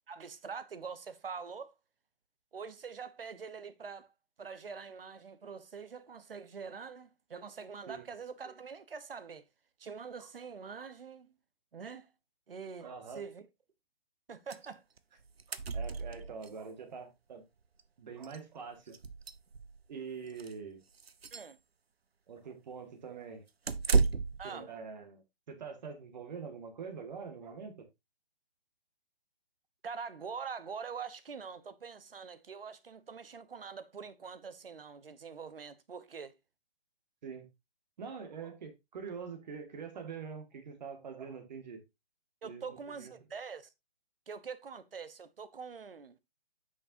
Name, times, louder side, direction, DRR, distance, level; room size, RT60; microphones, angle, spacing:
voice 1, 0.1-1.7 2.5-4.1 4.4-9.4 9.8-11.3 11.7-12.1 12.5-12.9 13.1-13.5 14.3-14.8 21.3-21.6 24.4-24.7 29.8-36.4 42.4-43.7 44.3-46.2, right 5 dB, 65° right, 1.1 m, -44 dB
voice 2, 12.8-13.3 15.5-17.4 18.0-19.0 19.9-20.8 22.3-23.4 24.4-27.9 37.2-37.4 38.0-41.8 42.4-43.1, right 6 dB, 45° right, 2.0 m, -44 dB
sound 1, 14.5-14.7 15.0-15.1 15.2-16.5 17.8-17.9 18.2-18.4 18.9-19.8 20.3-20.5 21.0-21.5 23.7-24.5, right 4 dB, 80° right, 0.7 m, -32 dB
8.7 x 6.6 x 2.7 m
figure-of-eight pair, 135°, 30 cm